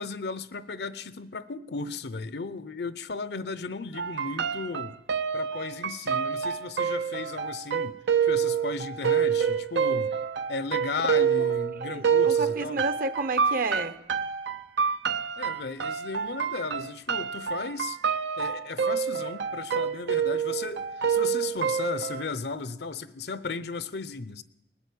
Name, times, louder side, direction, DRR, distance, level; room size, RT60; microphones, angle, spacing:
voice 1, 0.0-5.0 5.3-10.1 10.5-12.8 15.4-18.0 18.4-24.4, left 4 dB, 65° left, 0.7 m, -35 dB
sound 1, 3.9-22.2, right 7 dB, 80° right, 0.7 m, -27 dB
voice 2, 11.2-11.5 11.8-14.0, right 2 dB, 50° right, 0.8 m, -31 dB
19.5 x 8.2 x 8.5 m
head